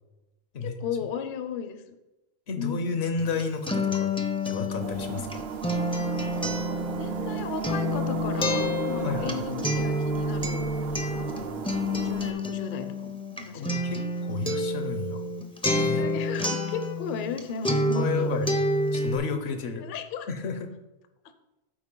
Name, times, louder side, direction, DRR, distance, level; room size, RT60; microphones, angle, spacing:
voice 1, 0.6-1.8 2.6-3.2 6.4-6.5 7.0-10.7 11.1-11.6 11.9-13.8 15.9-18.3 19.8-20.3, left 6 dB, 60° left, 9 dB, 0.7 m, -35 dB
voice 2, 2.5-4.1 4.5-5.5 9.0-9.6 13.5-15.3 15.6-16.1 17.9-18.5 18.9-19.9 20.3-20.7, left 5 dB, 80° left, 7 dB, 1.0 m, -32 dB
Acoustic guitar, 3.2-17.4 17.6-19.2, left 1 dB, 10° left, 0.3 m, -28 dB
sound 1, 4.8-12.3, right 7 dB, 75° right, 0.8 m, -35 dB
8.7 x 4.1 x 3.7 m, 1.0 s
omnidirectional pair, 1.1 m